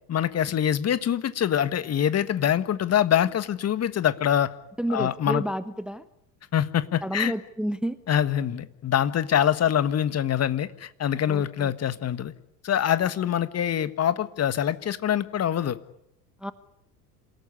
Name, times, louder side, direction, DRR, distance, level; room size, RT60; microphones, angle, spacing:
voice 1, 0.1-4.5 4.9-5.4 6.5-7.3 8.1-12.3 12.6-15.8, left 10 dB, 30° left, 14 dB, 1.6 m, -24 dB
voice 2, 4.8-6.0 7.0-8.0 11.3-11.7 16.4-16.5, right 1 dB, ahead, 14 dB, 1.1 m, -30 dB
27.5 x 17.5 x 10.0 m, 0.78 s
hypercardioid pair, 75°, 47 cm